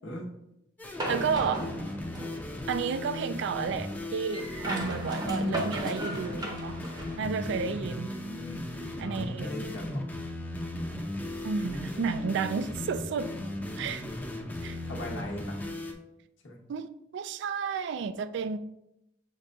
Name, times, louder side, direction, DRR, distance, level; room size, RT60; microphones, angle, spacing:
sound 1, 0.8-15.9, left 1 dB, 10° left, 0.5 m, -37 dB
sound 2, 1.0-2.5 4.3-7.2, equal, 25° right, 0.7 m, -35 dB
voice 1, 1.1-1.7 2.7-6.8 7.2-8.1 9.0-9.5 11.4-13.3 13.8-14.0 14.6-14.8 16.7-18.6, right 6 dB, 65° right, 0.3 m, -32 dB
voice 2, 7.9-8.6 9.0-10.1 14.8-15.6 16.4-16.6, left 1 dB, 90° left, 0.9 m, -40 dB
6.4 x 2.2 x 3.8 m
head